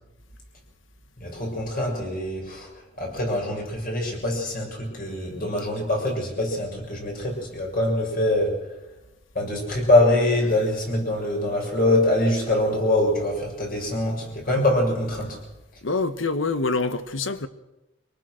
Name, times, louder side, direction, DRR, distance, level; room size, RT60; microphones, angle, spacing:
voice 1, 1.2-2.7 3.0-8.6 9.3-15.4, left 1 dB, 50° left, 6.6 m, -24 dB
voice 2, 15.8-17.5, left 3 dB, 80° left, 1.2 m, -25 dB
24.5 x 19.0 x 6.3 m
head